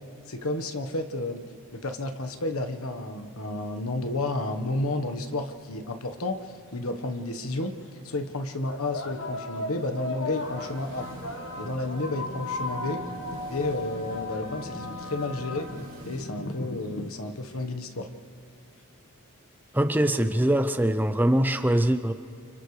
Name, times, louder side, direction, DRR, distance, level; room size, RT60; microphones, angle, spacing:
voice 1, 0.3-1.4 1.7-7.8 8.0-11.1 11.6-13.0 13.5-15.7 16.0-18.1, left 2 dB, 85° left, 7 dB, 1.3 m, -31 dB
sound 1, 6.6-6.7 7.6-7.8 8.7-17.6, left 2 dB, 60° left, 1.4 m, -36 dB
sound 2, 10.3-16.2, right 1 dB, 65° right, 5.2 m, -43 dB
voice 2, 19.7-22.1, right 1 dB, 10° right, 10 dB, 0.5 m, -23 dB
30.0 x 29.0 x 3.3 m, 2.8 s
head